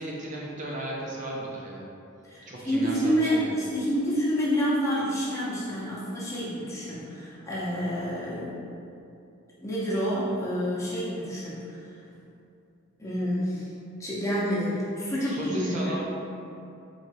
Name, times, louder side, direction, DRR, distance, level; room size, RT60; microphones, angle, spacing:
voice 1, 0.0-1.8 2.5-3.5 15.2-16.0, right 1 dB, 40° right, -4 dB, 0.5 m, -35 dB
voice 2, 2.2-8.6 9.6-11.8 13.0-13.7 14.0-16.0, equal, 15° left, -8 dB, 1.0 m, -28 dB
4.6 x 4.1 x 2.7 m, 2.7 s
head